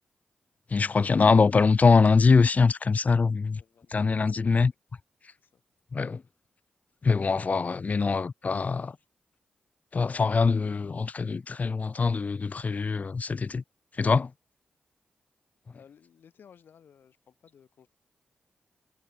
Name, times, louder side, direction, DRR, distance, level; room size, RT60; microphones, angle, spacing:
voice 1, 0.7-3.6 3.9-4.7 5.9-6.2 7.0-9.0 9.9-13.6 14.0-14.3, left 4 dB, 50° left, 0.9 m, -23 dB
voice 2, 3.6-4.0 4.3-4.7 5.4-5.6 15.7-17.9, left 7 dB, 80° left, 6.8 m, -57 dB
cardioid pair, 55°, 3 cm